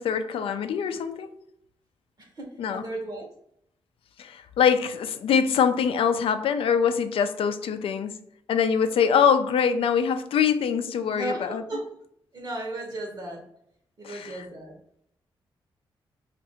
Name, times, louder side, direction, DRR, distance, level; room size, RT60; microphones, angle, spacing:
voice 1, 0.0-1.4 2.6-2.8 4.2-8.2 8.5-11.6 14.0-14.4, left 7 dB, 70° left, 9 dB, 0.4 m, -24 dB
voice 2, 2.2-3.3 11.1-11.9 12.3-13.5 14.0-14.8, right 2 dB, 50° right, 2 dB, 1.0 m, -35 dB
2.6 x 2.5 x 4.2 m, 0.71 s
supercardioid pair, 55°, 10 cm